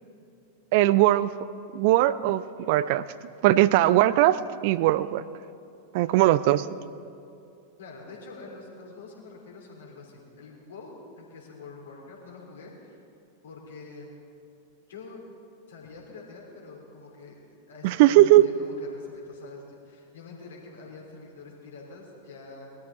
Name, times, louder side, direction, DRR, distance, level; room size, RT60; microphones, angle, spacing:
voice 1, 0.7-1.3 1.7-3.1 3.4-5.2 5.9-6.6 17.8-18.5, right 15 dB, 50° right, 17 dB, 0.4 m, -20 dB
voice 2, 7.8-13.0 13.4-14.1 14.9-15.2 15.7-22.7, left 3 dB, 65° left, -1 dB, 3.4 m, -46 dB
20.5 x 13.0 x 4.1 m, 2.6 s
figure-of-eight pair, 90°, 0 cm